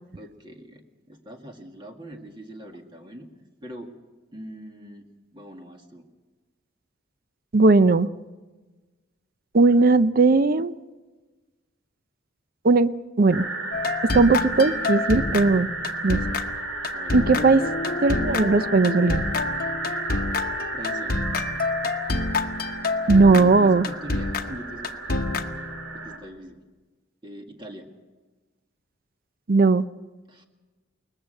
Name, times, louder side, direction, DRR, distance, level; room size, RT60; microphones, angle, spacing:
voice 1, 0.2-3.9 4.3-6.0 16.9-17.5 20.7-21.2 23.3-25.3 25.9-26.6 27.2-28.0 30.3-30.4, equal, 25° right, 1.9 m, -42 dB
voice 2, 7.5-8.1 9.5-10.7 12.6-13.5 14.0-15.7 16.0-16.2 17.1-17.6 18.0-19.2 23.1-23.9 29.5-29.9, right 3 dB, 45° right, 0.6 m, -18 dB
sound 1, 13.3-26.2, right 3 dB, 85° right, 3.2 m, -33 dB
sound 2, 13.7-26.1, left 3 dB, 50° left, 1.0 m, -28 dB
22.0 x 20.0 x 6.6 m
head